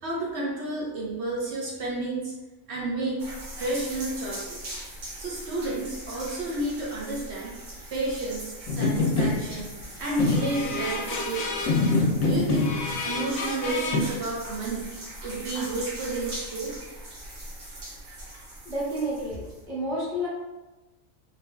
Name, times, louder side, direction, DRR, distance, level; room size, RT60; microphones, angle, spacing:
voice 1, 0.0-2.3 2.7-3.2 3.6-4.7 5.2-7.5 7.9-9.7 10.0-11.6 12.2-12.7 13.0-14.9 15.2-16.7, right 2 dB, 60° right, -4 dB, 1.0 m, -31 dB
sound 1, 3.2-19.7, right 1 dB, 85° right, 1.4 m, -41 dB
sound 2, 8.7-9.6 10.2-14.0, left 3 dB, 85° left, 1.0 m, -26 dB
voice 2, 18.6-20.3, equal, 5° left, -6 dB, 0.3 m, -30 dB
3.8 x 2.7 x 2.2 m, 1.1 s
omnidirectional pair, 1.4 m